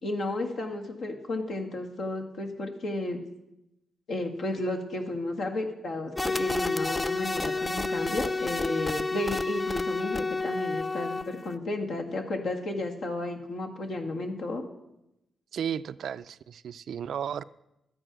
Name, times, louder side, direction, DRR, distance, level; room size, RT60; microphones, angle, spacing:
voice 1, 0.0-3.2 4.1-14.6, left 2 dB, 65° left, 2 dB, 1.8 m, -33 dB
sound 1, 6.2-11.5, left 3 dB, 20° left, 0.4 m, -30 dB
voice 2, 15.5-17.4, right 8 dB, 70° right, 15 dB, 0.4 m, -34 dB
13.0 x 9.0 x 6.1 m, 0.89 s
cardioid pair, 100°, 0 cm